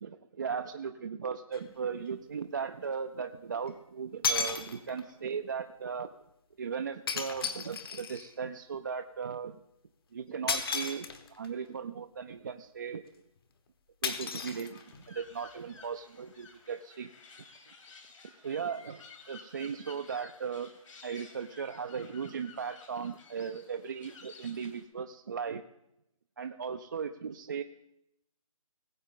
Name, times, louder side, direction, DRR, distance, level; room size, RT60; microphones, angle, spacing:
voice 1, 0.0-6.1 6.6-9.6 10.1-13.0 14.0-14.8 15.1-17.1 18.4-19.0 19.3-20.7 21.0-25.6 26.4-27.6, right 6 dB, 35° right, 6 dB, 0.4 m, -37 dB
sound 1, 1.5-1.6 3.7-3.8 4.2-5.1 7.1-8.3 10.5-11.5 14.0-15.1, left 5 dB, 40° left, 1.1 m, -34 dB
sound 2, 14.7-24.8, left 4 dB, 60° left, 2.5 m, -54 dB
19.5 x 7.8 x 3.7 m, 0.84 s
figure-of-eight pair, 155°, 18 cm